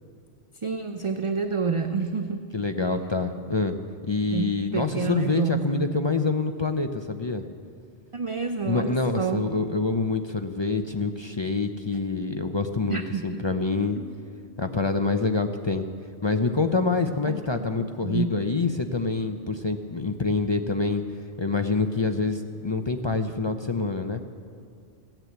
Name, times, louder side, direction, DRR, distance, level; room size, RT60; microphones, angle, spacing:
voice 1, 0.6-2.4 4.3-5.9 8.1-9.5 12.9-13.2 14.0-14.1 17.3-18.3, right 5 dB, 40° right, 7 dB, 0.5 m, -29 dB
voice 2, 2.5-3.8 4.0-7.4 8.6-14.0 14.6-15.8 16.2-21.0 21.4-24.2, left 3 dB, 35° left, 6 dB, 0.4 m, -26 dB
16.0 x 9.0 x 8.0 m, 2.4 s
omnidirectional pair, 1.2 m